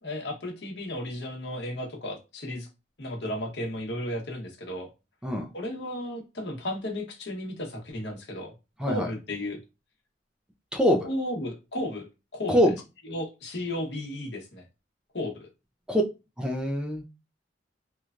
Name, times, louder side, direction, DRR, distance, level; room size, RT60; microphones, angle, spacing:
voice 1, 0.0-2.7 3.0-4.9 5.5-8.5 8.9-9.6 11.0-12.1 12.3-12.7 13.0-14.6 15.1-15.5, left 1 dB, 70° left, 0.9 m, -34 dB
voice 2, 10.7-11.1 12.5-12.7 15.9-16.0 16.4-17.0, equal, 5° right, 0.4 m, -24 dB
3.0 x 2.2 x 2.4 m
head